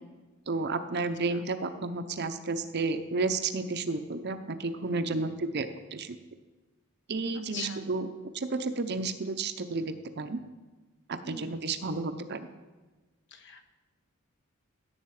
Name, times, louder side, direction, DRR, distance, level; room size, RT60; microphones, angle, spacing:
voice 1, 0.5-6.2 7.1-10.4 11.1-12.5, right 3 dB, 50° right, 9 dB, 0.7 m, -32 dB
voice 2, 11.2-11.6 13.3-13.7, left 4 dB, 55° left, 6 dB, 1.1 m, -42 dB
16.0 x 8.0 x 4.9 m, 1.2 s
head